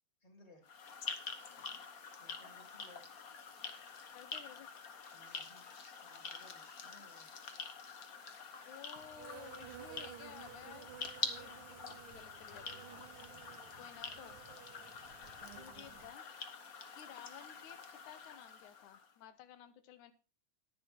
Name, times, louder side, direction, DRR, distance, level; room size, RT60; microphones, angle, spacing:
voice 1, 0.2-0.6 2.2-3.2 5.1-7.3 13.3-13.4 13.8-13.9, left 1 dB, 15° left, 1 dB, 2.6 m, -62 dB
sound 1, 0.6-19.1, left 5 dB, 65° left, 0.8 m, -47 dB
voice 2, 1.5-1.8 4.1-4.7 8.6-11.0 11.3-13.1 13.4-13.5 13.8-14.4 15.5-16.3 17.0-17.8 18.1-20.1, left 10 dB, 85° left, 11 dB, 2.4 m, -55 dB
Insect, 9.0-16.1, right 13 dB, 85° right, 2.0 m, -54 dB
11.0 x 10.5 x 4.3 m, 0.35 s
omnidirectional pair, 3.4 m